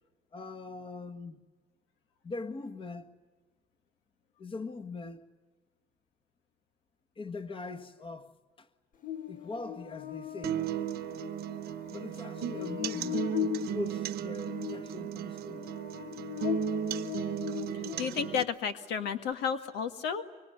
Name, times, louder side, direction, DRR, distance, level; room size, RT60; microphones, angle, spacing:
voice 1, 0.3-1.4 2.2-3.2 4.4-5.3 7.1-8.7 9.3-10.7 11.9-15.7, left 3 dB, 30° left, 1.7 m, -41 dB
Buzz, 9.0-18.5, left 10 dB, 50° left, 1.7 m, -39 dB
sound 1, 10.4-18.4, right 11 dB, 70° right, 1.1 m, -36 dB
voice 2, 18.0-20.2, left 7 dB, 90° left, 1.9 m, -32 dB
25.0 x 24.0 x 9.7 m
cardioid pair, 110°, 17 cm